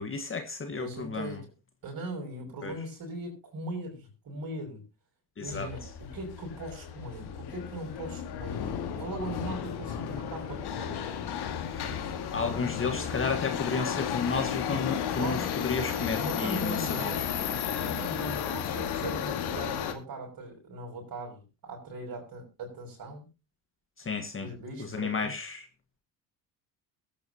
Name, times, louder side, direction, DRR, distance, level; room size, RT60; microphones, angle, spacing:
voice 1, 0.0-1.4 2.6-2.7 5.4-5.7 11.7-17.3 24.0-24.5 24.8-25.6, left 4 dB, 25° left, 6 dB, 1.7 m, -32 dB
voice 2, 0.7-1.5 1.8-4.8 5.4-8.6 9.0-11.0 12.0-12.1 15.2-15.5 16.1-17.3 17.8-23.2 24.4-25.3, right 2 dB, 45° right, 1 dB, 6.1 m, -39 dB
Subway metro underground, 5.5-19.9, left 8 dB, 55° left, 2.2 m, -33 dB
21.5 x 8.6 x 3.0 m, 0.27 s
hypercardioid pair, 65°, 47 cm